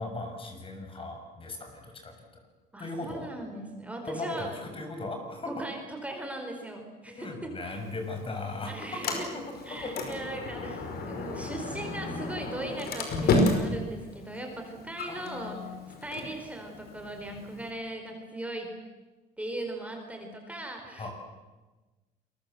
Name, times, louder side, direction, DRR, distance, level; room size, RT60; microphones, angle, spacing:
voice 1, 0.0-2.1 2.8-3.3 4.1-5.5 7.2-9.5 9.8-10.2 10.6-10.7 15.0-15.8 21.0-21.1, left 2 dB, 30° left, 4 dB, 6.6 m, -37 dB
voice 2, 2.7-4.5 5.5-7.8 8.7-9.3 9.6-15.6 16.0-18.7 19.4-21.1, right 1 dB, 10° right, 3 dB, 4.6 m, -39 dB
Sliding door, 7.7-17.7, left 3 dB, 65° left, 5.4 m, -33 dB
27.5 x 22.0 x 8.0 m, 1.2 s
cardioid pair, 110°, 17 cm